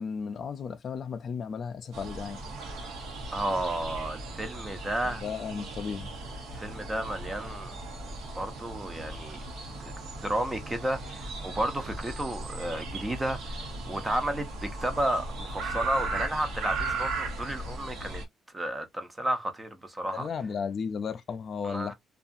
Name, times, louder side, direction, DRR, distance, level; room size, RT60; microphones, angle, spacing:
voice 1, 0.0-2.4 5.2-6.1 20.1-21.9, left 6 dB, 45° left, 0.3 m, -34 dB
sound 1, 1.9-18.2, right 2 dB, 85° right, 1.0 m, -37 dB
voice 2, 3.3-5.2 6.5-7.7 8.3-9.4 10.1-13.5 13.9-18.2 18.5-20.3 21.6-21.9, right 1 dB, 15° right, 0.6 m, -32 dB
2.7 x 2.3 x 2.5 m
cardioid pair, 140°, 0 cm